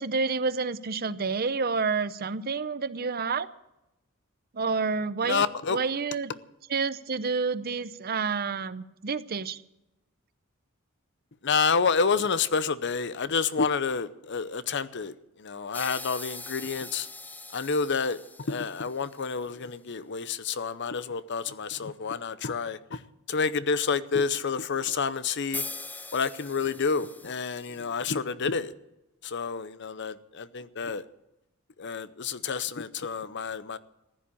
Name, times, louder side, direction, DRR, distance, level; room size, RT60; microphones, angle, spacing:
voice 1, 0.0-3.5 4.5-6.3 6.7-9.6, right 4 dB, 45° right, 0.6 m, -29 dB
voice 2, 5.2-5.8 11.4-17.1 17.5-23.0 23.3-25.6 26.1-28.7 29.2-31.0 31.8-33.8, left 5 dB, 55° left, 0.7 m, -29 dB
sound 1, 15.7-19.2 25.5-27.9, left 3 dB, 10° left, 0.5 m, -41 dB
15.0 x 10.0 x 8.5 m
head